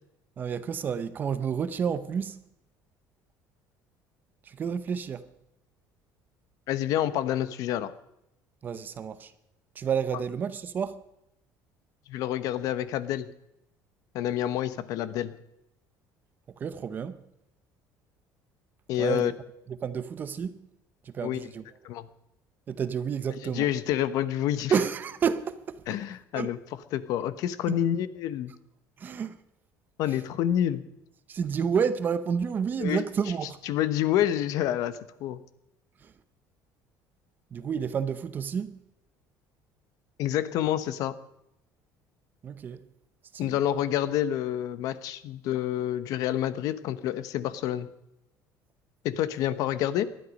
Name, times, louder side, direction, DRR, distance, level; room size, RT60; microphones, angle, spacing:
voice 1, 0.4-2.4 4.4-5.3 8.6-9.3 9.7-11.0 16.6-17.2 19.0-19.3 19.7-20.6 21.0-21.6 22.7-23.7 24.7-26.0 26.3-26.5 27.7-27.8 29.0-29.4 30.1-30.2 31.3-33.6 36.0-36.1 37.5-38.8 42.4-42.8 43.3-43.6, right 7 dB, 25° right, 0.7 m, -30 dB
voice 2, 6.7-7.9 12.1-13.3 14.1-15.3 18.9-19.3 21.2-21.4 21.8-22.1 23.4-24.7 25.9-26.6 26.9-28.5 30.0-30.8 32.8-33.0 33.7-35.4 40.2-41.1 43.4-47.9 49.0-50.1, left 11 dB, 55° left, 1.0 m, -28 dB
19.5 x 13.0 x 5.3 m
cardioid pair, 175°, 7 cm